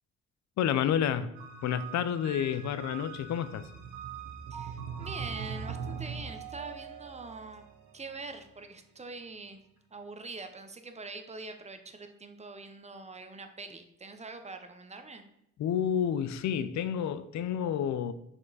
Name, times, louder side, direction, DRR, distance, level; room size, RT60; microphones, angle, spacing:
voice 1, 0.6-1.3 1.6-3.7 15.6-18.1, left 9 dB, 65° left, 0.6 m, -29 dB
sound 1, 1.3-8.6, right 6 dB, 80° right, 1.1 m, -42 dB
voice 2, 4.5-7.7 7.9-9.6 9.9-15.2, right 3 dB, 20° right, 0.8 m, -44 dB
7.0 x 5.4 x 4.1 m
cardioid pair, 90°, 30 cm